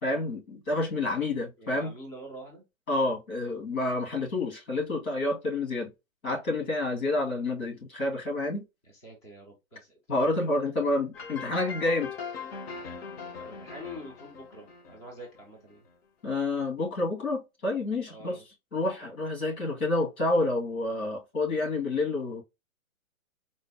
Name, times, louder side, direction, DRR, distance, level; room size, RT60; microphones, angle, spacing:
voice 1, 0.0-1.9 2.9-5.9 6.2-8.6 10.1-12.1 16.2-18.4 18.7-22.4, left 2 dB, 85° left, 2.5 m, -29 dB
voice 2, 1.6-2.6 8.8-10.0 11.2-11.3 13.4-15.8 18.1-18.4, equal, 10° left, 0.4 m, -45 dB
sound 1, 11.1-15.7, left 5 dB, 45° left, 0.8 m, -40 dB
4.0 x 2.1 x 3.4 m
hypercardioid pair, 145°, 41 cm